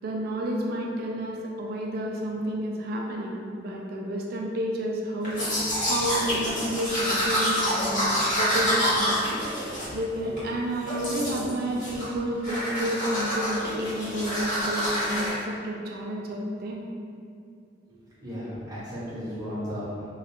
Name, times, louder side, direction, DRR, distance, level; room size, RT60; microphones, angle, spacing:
voice 1, 0.0-16.8, equal, 60° right, -1 dB, 0.3 m, -31 dB
Domestic sounds home sounds, 5.2-10.5 10.9-11.5 11.8-12.2 12.4-15.3, equal, 45° left, 0.9 m, -27 dB
voice 2, 17.9-20.1, equal, 20° right, -12 dB, 0.8 m, -35 dB
2.3 x 2.0 x 2.8 m, 2.4 s
head